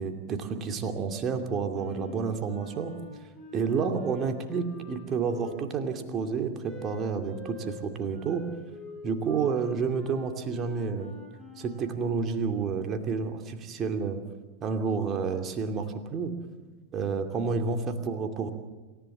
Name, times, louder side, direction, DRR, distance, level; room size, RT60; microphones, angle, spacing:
voice 1, 0.0-2.9 3.5-8.4 9.0-11.1 11.6-14.2 14.6-16.3 16.9-18.5, right 5 dB, 30° right, 6 dB, 2.6 m, -30 dB
Wind instrument woodwind instrument, 1.7-5.9 6.6-12.0, left 5 dB, 20° left, 7.1 m, -46 dB
27.5 x 15.0 x 7.4 m, 1.3 s
figure-of-eight pair, 90°, 0 cm